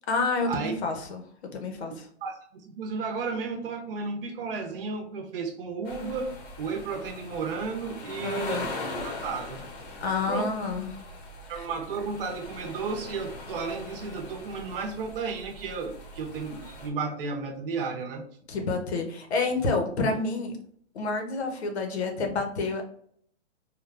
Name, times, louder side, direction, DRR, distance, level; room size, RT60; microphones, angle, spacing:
voice 1, 0.1-1.2 1.5-2.1 8.2-8.7 10.0-11.0 11.4-11.7 18.5-20.6 20.9-22.8, left 3 dB, 65° left, 4 dB, 1.0 m, -29 dB
voice 2, 2.2-8.6 9.0-9.7 10.3-10.4 11.5-18.2, right 4 dB, 50° right, 3 dB, 0.8 m, -33 dB
sound 1, 5.8-16.9, left 2 dB, 35° left, 0.8 m, -41 dB
3.7 x 2.3 x 2.4 m, 0.63 s
hypercardioid pair, 145°, 35 cm